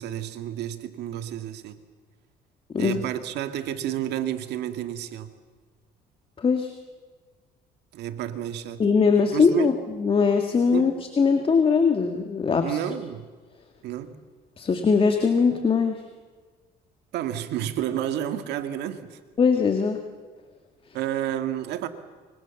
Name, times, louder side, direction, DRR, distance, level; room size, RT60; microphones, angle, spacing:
voice 1, 0.0-1.8 2.8-5.3 7.9-8.8 9.3-9.8 10.7-10.9 12.6-13.3 13.8-14.2 17.1-19.2 20.9-21.9, right 11 dB, 80° right, 9 dB, 2.0 m, -30 dB
voice 2, 6.4-6.7 8.8-10.9 11.2-12.8 14.6-16.0 19.4-20.0, left 5 dB, 30° left, 5 dB, 2.0 m, -21 dB
25.0 x 24.5 x 7.2 m, 1.5 s
cardioid pair, 110°, 17 cm